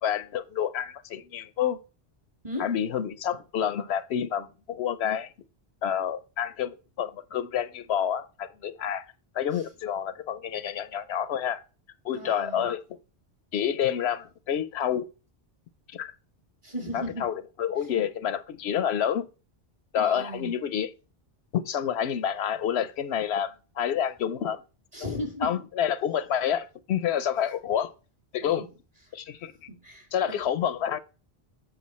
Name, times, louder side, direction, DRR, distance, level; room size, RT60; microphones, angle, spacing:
voice 1, 0.0-1.8 2.6-5.3 5.8-9.0 9.3-11.6 12.0-12.8 13.5-15.1 15.9-16.1 16.9-19.3 19.9-20.9 21.5-24.6 25.4-27.9 28.3-28.6 29.1-29.5 30.1-31.0, left 9 dB, 85° left, 0.9 m, -28 dB
voice 2, 2.4-2.8 9.5-9.6 12.1-12.7 16.6-17.3 20.0-20.5 24.9-25.6 28.4-28.5 29.7-30.4, left 1 dB, 35° right, 2.1 m, -36 dB
7.8 x 5.5 x 4.2 m
omnidirectional pair, 1.1 m